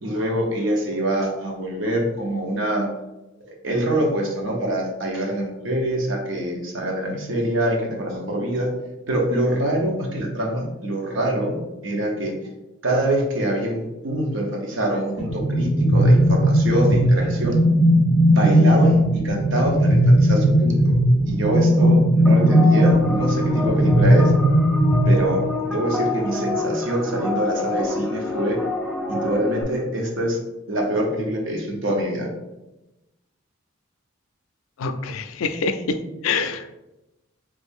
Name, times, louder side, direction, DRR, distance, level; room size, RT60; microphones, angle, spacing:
voice 1, 0.0-2.9 3.6-8.7 9.1-11.6 11.8-12.3 12.8-17.6 18.2-21.0 21.3-24.3 25.0-28.6 29.1-30.4 30.7-32.3, right 1 dB, 65° right, -1 dB, 0.8 m, -24 dB
sound 1, 15.2-25.7, equal, 20° right, 1.0 m, -17 dB
sound 2, 22.3-29.6, left 2 dB, ahead, 0.3 m, -28 dB
voice 2, 34.8-36.7, left 4 dB, 80° left, 9 dB, 0.4 m, -26 dB
3.3 x 2.5 x 3.5 m, 0.99 s
head